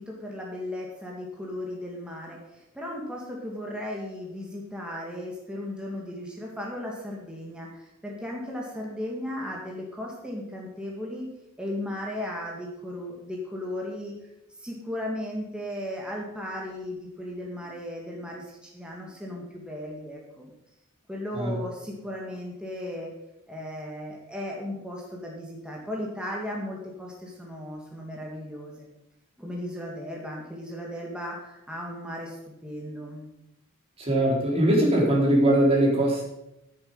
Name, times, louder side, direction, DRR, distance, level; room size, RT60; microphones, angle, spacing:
voice 1, 0.0-11.3 11.6-14.1 14.6-20.5 21.1-23.1 23.5-28.9 29.4-32.4 32.6-33.3, left 1 dB, 5° right, -2 dB, 2.0 m, -36 dB
voice 2, 34.0-36.2, right 1 dB, 25° right, -3 dB, 3.7 m, -21 dB
10.0 x 9.9 x 5.6 m, 0.86 s
head